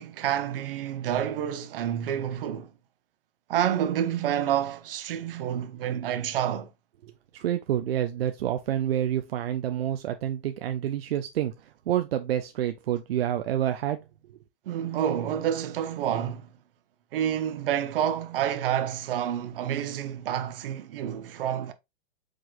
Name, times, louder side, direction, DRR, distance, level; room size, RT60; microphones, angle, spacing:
voice 1, 0.0-2.7 3.5-6.7 14.7-16.5 17.1-21.7, right 10 dB, 70° right, 0.9 m, -28 dB
voice 2, 7.0-14.0, right 11 dB, 90° right, 0.6 m, -28 dB
4.9 x 3.8 x 2.5 m
hypercardioid pair, 135°, 29 cm